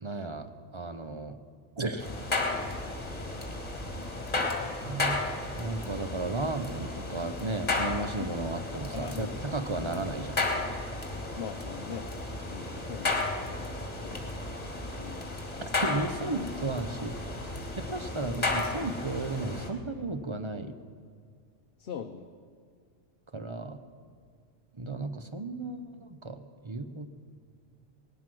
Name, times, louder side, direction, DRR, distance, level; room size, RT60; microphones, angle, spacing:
voice 1, 0.0-1.4 1.8-2.1 4.9-5.2 5.6-10.5 15.8-17.3 17.8-20.7 23.3-23.8 24.7-27.1, right 2 dB, 30° right, 9 dB, 0.7 m, -34 dB
sound 1, 2.0-19.7, left 2 dB, 35° left, 1.8 m, -34 dB
voice 2, 8.7-9.5 11.3-12.1 12.5-15.3 21.8-22.3, left 7 dB, 60° left, 5 dB, 0.9 m, -42 dB
18.5 x 12.0 x 6.1 m, 2.1 s
omnidirectional pair, 1.2 m